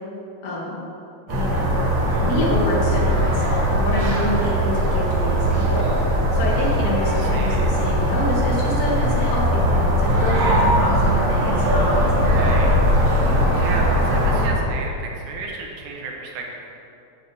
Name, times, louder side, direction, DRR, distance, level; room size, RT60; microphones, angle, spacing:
voice 1, 0.4-0.9 1.3-12.8, left 1 dB, 65° left, -3 dB, 2.9 m, -27 dB
sound 1, 1.3-14.5, equal, 55° right, 2.8 m, -19 dB
voice 2, 7.1-7.7 12.3-12.8 13.5-16.7, right 3 dB, 85° right, 0 dB, 3.1 m, -33 dB
9.4 x 5.4 x 7.2 m, 2.7 s
omnidirectional pair, 4.3 m